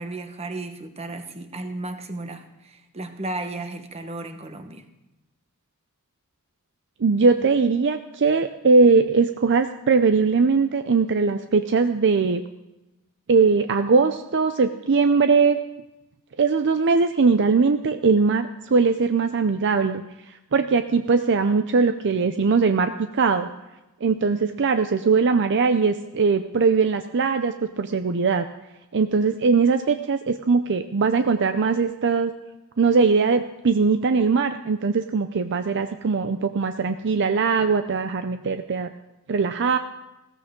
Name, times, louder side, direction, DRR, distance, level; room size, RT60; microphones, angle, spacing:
voice 1, 0.0-4.8, right 2 dB, 30° right, 7 dB, 1.2 m, -34 dB
voice 2, 7.0-12.4 13.3-15.6 16.4-20.0 20.5-23.5 24.0-28.5 28.9-32.3 32.8-38.9 39.3-39.8, right 4 dB, 55° right, 8 dB, 0.6 m, -20 dB
16.0 x 14.5 x 3.8 m, 0.97 s
head